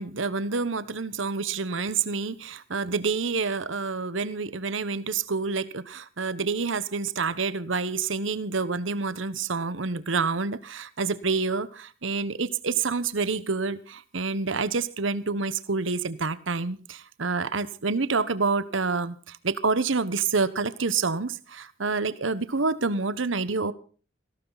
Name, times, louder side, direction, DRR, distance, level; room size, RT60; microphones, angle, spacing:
voice 1, 0.0-23.7, right 4 dB, 85° right, 1.1 m, -28 dB
19.5 x 16.5 x 4.0 m
head